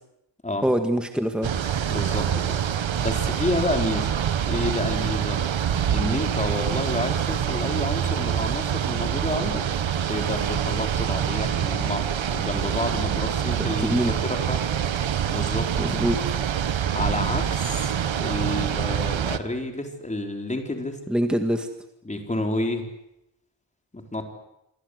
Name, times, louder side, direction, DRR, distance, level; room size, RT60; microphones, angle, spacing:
voice 1, 0.6-1.5 13.9-14.2 15.8-16.2 21.1-21.7, equal, ahead, 5 dB, 1.9 m, -24 dB
sound 1, 1.4-19.4, right 9 dB, 80° right, 1.5 m, -25 dB
voice 2, 1.9-2.6 3.0-4.1 4.5-5.4 5.9-9.6 10.1-12.0 12.3-14.6 15.3-15.7 16.9-17.9 18.2-21.0 22.0-22.9 23.9-24.2, left 1 dB, 15° left, 3 dB, 4.4 m, -29 dB
28.0 x 24.0 x 8.1 m, 0.86 s
wide cardioid pair, 150°, 45 cm